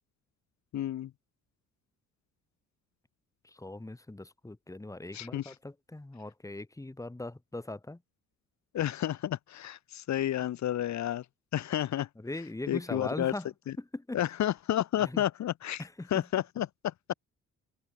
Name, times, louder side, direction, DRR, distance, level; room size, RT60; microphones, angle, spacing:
voice 1, 0.7-1.1 5.1-5.5 8.7-11.2 11.5-12.1 12.7-13.3 13.7-13.8 14.1-15.8 16.1-17.1, left 12 dB, 65° left, 1.4 m, -31 dB
voice 2, 3.4-8.0 12.2-13.5 13.8-14.2 15.0-15.2 15.8-16.2, left 2 dB, 10° left, 2.6 m, -40 dB
open air
cardioid pair, 90°, 30 cm